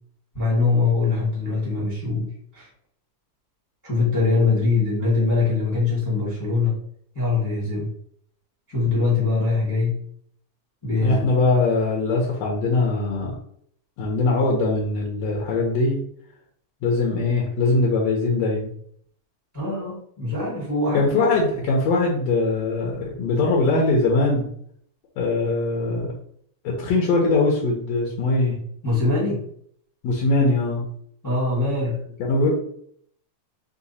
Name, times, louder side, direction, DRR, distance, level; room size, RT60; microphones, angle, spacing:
voice 1, 0.3-2.7 3.8-6.8 7.1-7.9 8.7-10.0 10.8-11.3 19.5-21.3 28.8-29.5 31.2-32.0, left 3 dB, 15° left, -6 dB, 0.7 m, -23 dB
voice 2, 11.0-13.3 14.0-16.0 16.8-18.7 20.9-24.5 25.2-26.1 26.6-28.6 30.0-30.8 32.2-32.5, left 3 dB, 70° left, -2 dB, 1.7 m, -21 dB
5.0 x 2.2 x 4.1 m, 0.64 s
omnidirectional pair, 3.6 m